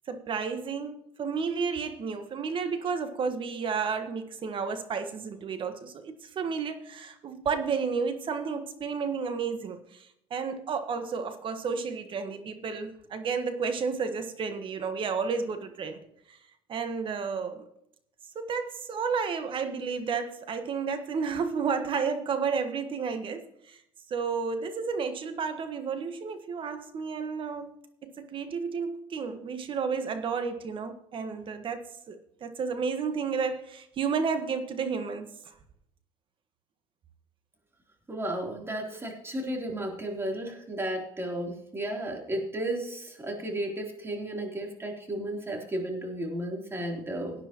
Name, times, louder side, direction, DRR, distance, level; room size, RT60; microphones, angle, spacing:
voice 1, 0.1-16.4 16.7-17.7 18.3-23.8 24.1-27.7 28.0-35.5 38.9-39.0, right 5 dB, 45° right, 8 dB, 1.5 m, -32 dB
voice 2, 38.1-47.3, right 1 dB, 20° right, 0 dB, 3.5 m, -33 dB
18.0 x 9.8 x 3.0 m, 0.76 s
supercardioid pair, 90°, 12 cm